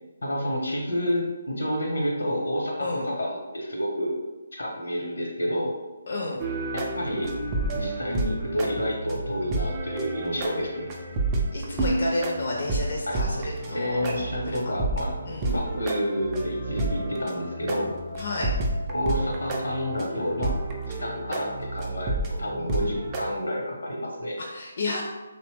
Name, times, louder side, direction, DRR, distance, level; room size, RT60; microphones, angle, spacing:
voice 1, 0.2-4.1 4.5-5.8 6.7-7.3 7.7-11.1 13.1-13.2 13.7-15.1 15.4-18.0 18.9-20.6 20.8-24.4, equal, 80° left, -1 dB, 0.8 m, -29 dB
voice 2, 6.1-6.4 11.5-14.2 14.5-14.7 15.3-15.5 18.2-18.5 24.5-25.0, left 2 dB, 55° left, -2 dB, 0.4 m, -31 dB
sound 1, 6.4-23.3, right 2 dB, 20° right, 0.4 m, -30 dB
2.8 x 2.0 x 3.2 m, 1.2 s
figure-of-eight pair, 155°, 0 cm